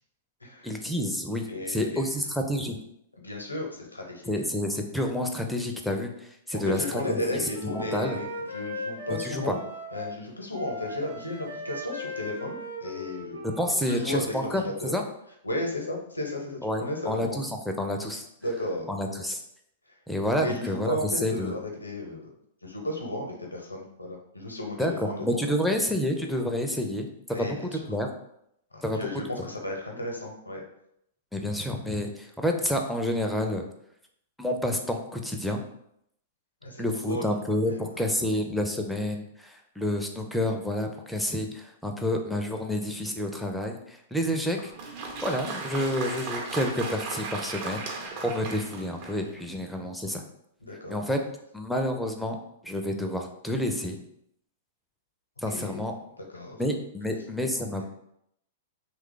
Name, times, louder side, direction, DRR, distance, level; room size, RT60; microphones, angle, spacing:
voice 1, 0.6-2.8 4.3-6.8 7.1-7.4 7.7-8.2 9.2-9.5 13.6-14.6 14.9-15.0 16.6-17.5 17.8-18.2 18.9-19.4 20.1-21.5 24.8-27.5 27.7-28.1 28.8-29.1 31.3-33.7 34.4-35.6 36.8-44.7 45.2-50.2 50.9-51.2 51.5-52.4 52.6-54.0 55.4-55.9 56.6-57.8, left 1 dB, ahead, 3 dB, 0.4 m, -29 dB
voice 2, 1.5-2.3 3.2-4.3 6.5-9.6 9.9-13.4 13.8-15.0 15.4-17.4 18.4-18.9 19.9-20.0 20.3-22.3 22.6-25.5 27.3-27.9 28.7-30.6 36.6-37.3 37.7-38.4 49.5-49.9 50.6-51.0 55.5-55.8 56.2-56.6, left 1 dB, 85° left, 1 dB, 0.7 m, -34 dB
Wind instrument woodwind instrument, 6.5-10.2 10.5-14.1, left 1 dB, 90° right, 1.0 m, -38 dB
Applause, 44.5-49.4, right 3 dB, 45° right, 0.6 m, -36 dB
2.9 x 2.2 x 3.8 m, 0.75 s
figure-of-eight pair, 105°, 0 cm